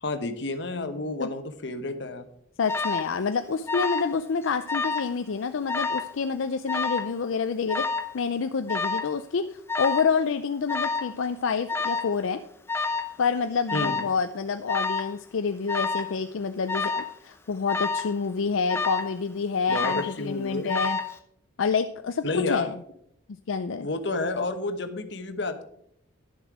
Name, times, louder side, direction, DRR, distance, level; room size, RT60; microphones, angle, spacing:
voice 1, 0.0-2.3 13.7-13.9 19.7-20.8 22.2-22.7 23.8-25.6, left 2 dB, 55° left, 8 dB, 1.0 m, -30 dB
voice 2, 2.6-7.9 8.1-12.4 13.2-21.0 21.6-22.7 23.5-23.9, left 5 dB, 75° left, 8 dB, 0.5 m, -28 dB
Alarm, 2.7-3.1 3.7-4.2 4.4-5.1 5.7-6.1 6.7-7.1 7.7-8.1 8.7-9.1 9.7-10.1 10.7-11.1 11.7-12.1 12.7-13.1 13.7-14.1 14.7-15.1 15.7-16.1 16.7-17.1 17.7-18.1 18.7-19.2 19.7-20.2 20.7-21.2, left 4 dB, 10° left, 0.7 m, -28 dB
11.0 x 7.2 x 4.8 m, 0.70 s
head